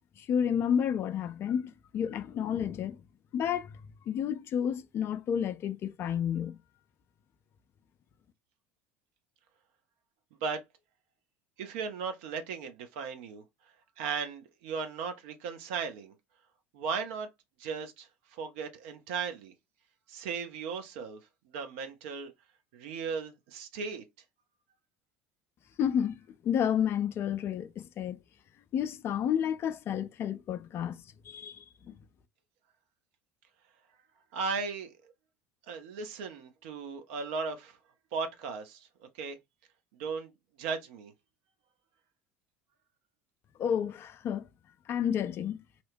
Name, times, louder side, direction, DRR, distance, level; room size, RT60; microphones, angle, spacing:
voice 1, 0.2-3.0 3.3-3.7 4.1-6.6 25.8-26.2 26.4-28.2 28.7-31.0 31.3-31.9 43.6-44.4 44.9-45.6, left 8 dB, 35° left, 0.3 m, -30 dB
voice 2, 11.6-13.4 14.0-16.1 16.7-17.3 17.6-18.1 18.3-19.5 20.1-21.2 21.5-22.3 22.7-24.0 34.3-34.9 35.7-37.8 38.1-38.9 39.2-39.4 40.0-40.3 40.6-41.1, right 5 dB, 60° right, 0.6 m, -36 dB
2.8 x 2.1 x 2.5 m
figure-of-eight pair, 65°, 7 cm